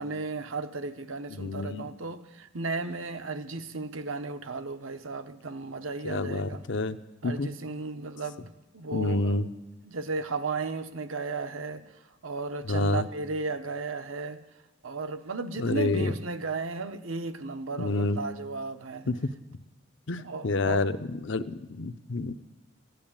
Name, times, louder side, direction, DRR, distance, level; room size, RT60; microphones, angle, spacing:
voice 1, 0.0-6.6 7.2-9.4 9.8-11.8 12.2-14.4 14.8-19.2 20.2-20.8, right 3 dB, 80° right, 1.0 m, -35 dB
voice 2, 1.3-1.8 6.0-7.0 7.2-7.5 8.9-9.5 12.7-13.0 15.6-16.1 17.8-18.2 19.1-19.2 20.1-21.0 21.2-22.3, left 2 dB, 60° left, 0.7 m, -28 dB
14.0 x 10.5 x 8.8 m
head